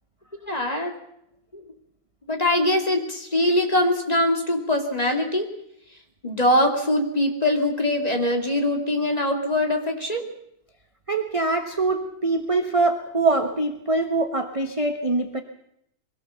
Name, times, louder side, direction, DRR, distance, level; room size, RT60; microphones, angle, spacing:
voice 1, 0.5-1.0 1.5-1.6 2.3-5.5 6.2-10.3, left 1 dB, 20° left, 2 dB, 2.6 m, -22 dB
voice 2, 11.1-15.4, right 3 dB, 20° right, 5 dB, 1.0 m, -23 dB
23.0 x 17.0 x 7.0 m, 0.75 s
omnidirectional pair, 1.9 m